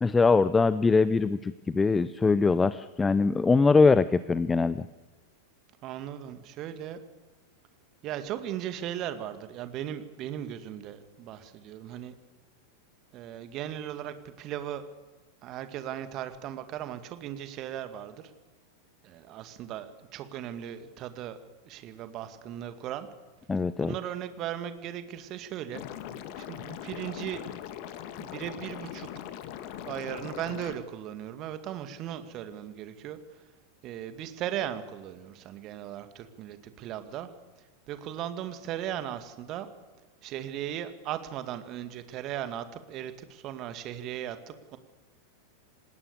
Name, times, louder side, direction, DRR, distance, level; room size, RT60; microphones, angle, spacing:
voice 1, 0.0-4.9 23.5-23.9, left 4 dB, 15° left, 16 dB, 0.6 m, -22 dB
voice 2, 5.8-7.0 8.0-12.2 13.1-14.8 15.4-18.3 19.0-21.4 21.6-23.1 23.8-25.8 26.4-27.4 28.2-29.1 29.8-33.2 33.8-37.3 37.9-39.7 40.2-44.8, right 11 dB, 35° right, 10 dB, 2.1 m, -37 dB
Liquid, 25.7-30.7, left 11 dB, 45° left, 1.9 m, -40 dB
27.5 x 20.0 x 6.8 m, 1.2 s
figure-of-eight pair, 90°, 0 cm